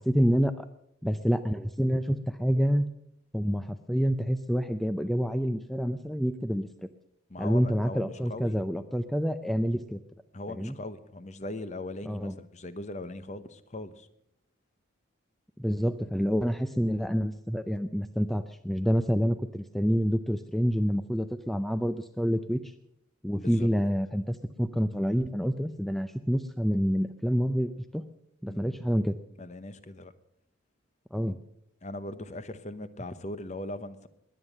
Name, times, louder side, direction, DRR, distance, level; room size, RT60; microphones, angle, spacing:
voice 1, 0.1-0.6 1.0-2.9 3.3-6.7 7.4-10.0 10.6-10.7 12.1-12.4 15.6-22.7 23.2-28.0 28.4-29.1 31.1-31.4, equal, ahead, 10 dB, 0.5 m, -27 dB
voice 2, 7.3-8.5 10.3-14.1 19.1-19.3 23.3-23.7 25.6-25.7 28.4-28.8 29.4-30.1 31.8-34.1, left 2 dB, 35° left, 13 dB, 0.9 m, -40 dB
21.0 x 9.1 x 6.6 m, 0.73 s
head